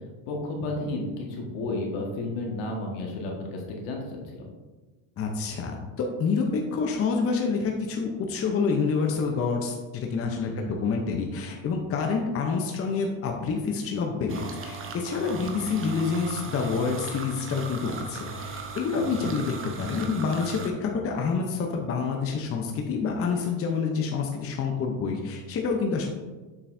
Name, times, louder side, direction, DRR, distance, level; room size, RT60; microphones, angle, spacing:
voice 1, 0.3-4.5 10.4-10.7 19.1-19.3, left 2 dB, 70° left, -1 dB, 1.8 m, -32 dB
voice 2, 5.2-26.1, left 5 dB, 30° left, 2 dB, 0.8 m, -28 dB
sound 1, 14.3-20.7, right 4 dB, 30° right, 0.9 m, -38 dB
7.1 x 5.5 x 2.7 m, 1.2 s
supercardioid pair, 110°, 44 cm